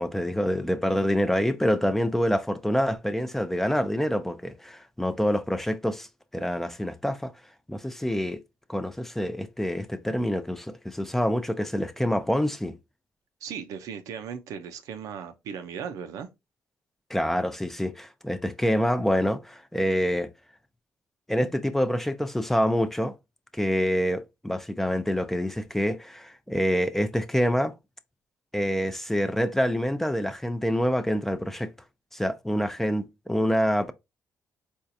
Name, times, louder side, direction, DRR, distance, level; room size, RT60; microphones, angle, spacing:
voice 1, 0.0-6.1 6.3-7.3 7.7-8.4 8.7-12.8 17.1-20.3 21.3-23.1 23.5-27.7 28.5-31.7 32.1-33.9, equal, 5° left, 0.4 m, -26 dB
voice 2, 13.4-16.3, right 7 dB, 90° right, 0.6 m, -37 dB
4.4 x 2.4 x 2.7 m
cardioid pair, 100°, 6 cm